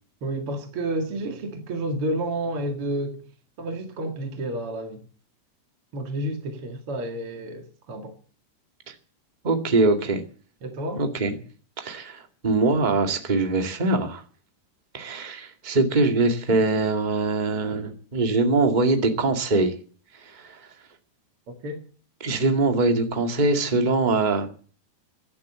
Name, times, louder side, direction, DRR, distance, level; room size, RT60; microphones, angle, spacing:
voice 1, 0.2-3.2 3.6-5.0 5.9-8.2 10.6-11.0 21.5-21.8, right 1 dB, 45° right, 2.3 m, -30 dB
voice 2, 9.4-10.2 10.9-11.3 11.8-14.2 14.9-19.7 20.2-20.6 22.2-24.5, right 3 dB, 25° right, 0.9 m, -23 dB
16.0 x 12.0 x 7.6 m
omnidirectional pair, 4.7 m